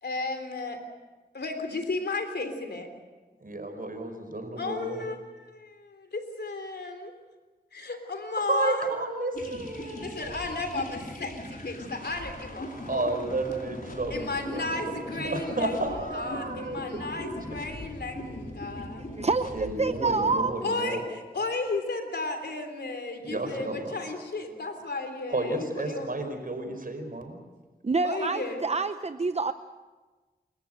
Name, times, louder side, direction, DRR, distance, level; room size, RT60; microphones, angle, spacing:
voice 1, 0.0-0.8 1.3-2.9 4.6-7.1 7.7-8.9 10.0-13.1 14.1-19.0 20.6-26.1 28.0-28.6, left 3 dB, 85° left, 6 dB, 3.4 m, -34 dB
voice 2, 3.4-5.0 8.4-10.4 12.9-14.9 15.2-16.8 17.2-17.3 19.5-21.0 23.3-23.9 25.3-27.3, right 2 dB, 60° right, 5 dB, 5.0 m, -32 dB
sound 1, 9.3-20.4, left 1 dB, 60° left, 4.9 m, -40 dB
voice 3, 19.2-20.5 27.8-29.5, right 4 dB, 40° right, 11 dB, 0.7 m, -27 dB
29.0 x 14.0 x 7.9 m, 1.3 s
cardioid pair, 45°, 17 cm